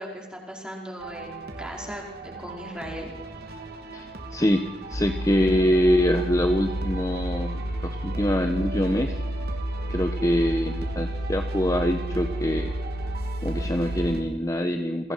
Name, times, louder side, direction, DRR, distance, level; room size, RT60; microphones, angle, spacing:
voice 1, 0.0-3.1, equal, 5° right, -1 dB, 5.1 m, -38 dB
sound 1, 1.0-14.2, right 3 dB, 60° right, 3.4 m, -40 dB
voice 2, 3.9-4.6 4.9-9.1 9.9-12.7 13.4-15.1, equal, 20° left, 6 dB, 1.2 m, -24 dB
sound 2, 4.9-14.2, right 1 dB, 85° left, 3.8 m, -31 dB
29.5 x 23.0 x 5.8 m, 1.0 s
head